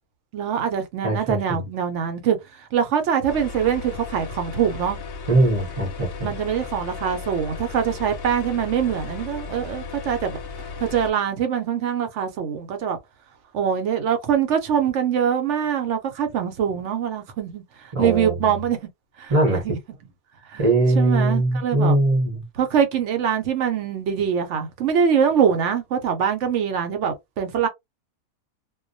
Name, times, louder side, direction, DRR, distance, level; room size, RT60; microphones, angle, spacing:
voice 1, 0.3-5.0 6.2-10.4 10.8-13.0 13.5-18.8 19.2-19.8 20.5-20.7 20.9-22.0 22.5-27.7, right 8 dB, 65° right, 0.8 m, -23 dB
voice 2, 1.0-1.6 5.3-6.3 17.9-18.5 19.3-19.6 20.6-22.4, right 2 dB, 30° right, 0.7 m, -21 dB
sound 1, 3.3-11.1, left 5 dB, 55° left, 0.7 m, -35 dB
2.2 x 2.2 x 2.5 m
omnidirectional pair, 1.5 m